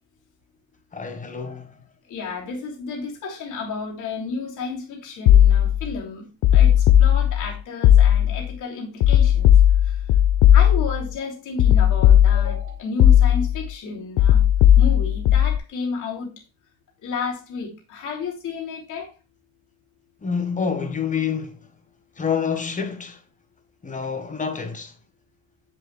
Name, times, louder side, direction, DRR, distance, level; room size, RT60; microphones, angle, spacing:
voice 1, 0.9-1.8 20.2-21.7 22.2-23.2 23.8-24.9, left 6 dB, 20° left, 1.3 m, -27 dB
voice 2, 2.1-6.2 6.5-6.7 7.0-9.5 9.9-10.0 10.5-14.4 14.8-16.3 17.0-19.1, left 4 dB, 55° left, 3.0 m, -32 dB
sound 1, 5.3-5.9 6.4-7.5 7.8-8.5 9.0-11.0 11.6-12.6 13.0-13.6 14.2-15.6, left 10 dB, 70° left, 0.8 m, -15 dB
7.5 x 7.1 x 2.3 m
supercardioid pair, 105°, 37 cm